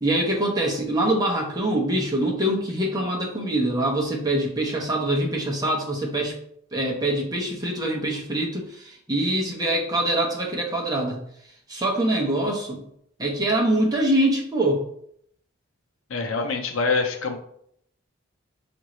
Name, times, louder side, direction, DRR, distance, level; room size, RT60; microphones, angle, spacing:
voice 1, 0.0-6.4 6.7-11.3 11.7-12.8 13.2-14.8, right 1 dB, 20° right, -2 dB, 0.8 m, -24 dB
voice 2, 16.1-17.4, left 4 dB, 75° left, 4 dB, 0.6 m, -25 dB
5.4 x 2.5 x 3.0 m, 0.70 s
head